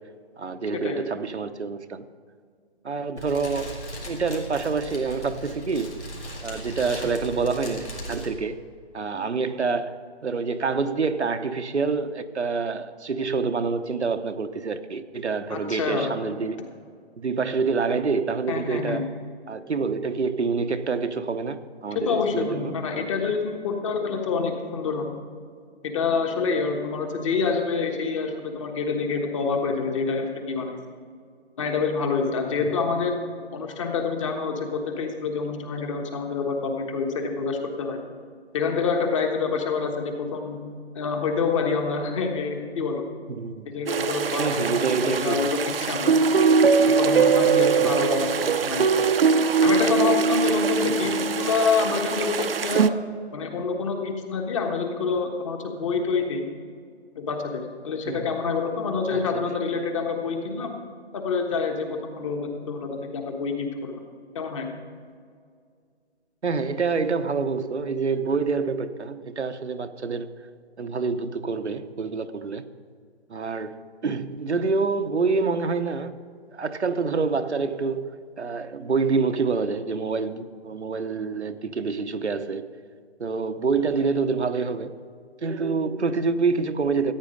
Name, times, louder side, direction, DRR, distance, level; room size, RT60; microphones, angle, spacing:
voice 1, 0.4-2.1 2.8-6.1 6.4-8.6 8.9-16.6 17.2-19.1 19.5-22.8 32.6-32.8 43.3-43.7 44.4-45.5 47.8-47.9 50.8-50.9 58.1-58.3 59.1-59.4 66.4-70.4 70.8-72.7 73.3-76.2 76.5-82.7 83.2-84.9 85.4-87.1, right 4 dB, 85° right, 0.8 m, -27 dB
Fire, 3.2-8.3, right 1 dB, 85° left, 3.8 m, -37 dB
voice 2, 15.5-16.1 18.5-19.0 21.9-25.1 25.8-30.8 31.6-33.2 33.5-38.0 38.5-40.6 40.9-43.0 43.6-46.1 46.8-49.0 49.6-52.9 53.3-56.5 57.1-60.7 61.1-64.0 64.3-64.7, left 5 dB, 30° left, 1.3 m, -27 dB
sound 1, 43.9-52.9, right 5 dB, 60° right, 0.6 m, -21 dB
14.5 x 9.1 x 5.2 m
figure-of-eight pair, 145°, 33 cm